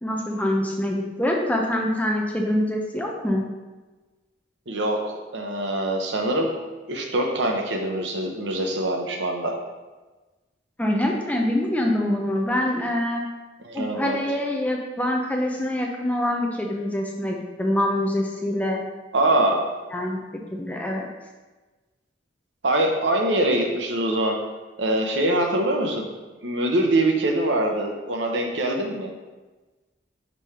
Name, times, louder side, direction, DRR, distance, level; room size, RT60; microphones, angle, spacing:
voice 1, 0.0-3.4 10.8-13.2 13.7-18.8 19.9-20.2 20.5-21.1, left 1 dB, 10° left, 0 dB, 0.6 m, -25 dB
voice 2, 4.7-6.5 6.9-9.5 13.6-14.2 19.1-19.6 22.6-24.4 24.8-26.1 26.4-29.1, right 1 dB, 65° right, 2 dB, 0.8 m, -23 dB
5.3 x 3.3 x 5.6 m, 1.2 s
head